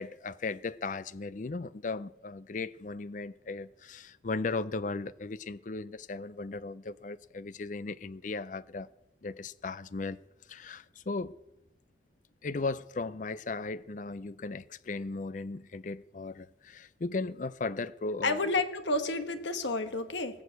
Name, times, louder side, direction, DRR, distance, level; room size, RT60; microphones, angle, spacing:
voice 1, 0.0-8.9 9.2-10.2 10.5-11.3 12.4-18.4, left 3 dB, 40° left, 0.5 m, -36 dB
voice 2, 18.2-20.3, left 2 dB, 75° left, 1.2 m, -30 dB
19.5 x 6.5 x 8.1 m
head